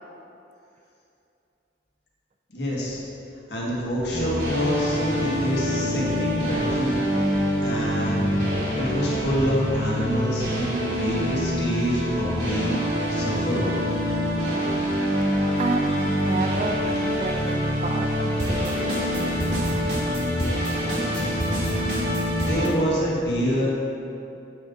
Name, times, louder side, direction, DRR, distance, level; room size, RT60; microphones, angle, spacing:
voice 1, 2.5-3.0 3.5-7.0 7.6-8.4 8.8-12.8 13.1-13.7 21.1-21.5 22.0-23.7, equal, 70° left, -5 dB, 1.7 m, -27 dB
sound 1, 4.1-22.7, equal, 65° right, 1.7 m, -25 dB
voice 2, 15.6-19.2, right 3 dB, 35° right, 5 dB, 0.4 m, -31 dB
8.5 x 5.2 x 3.8 m, 2.7 s
head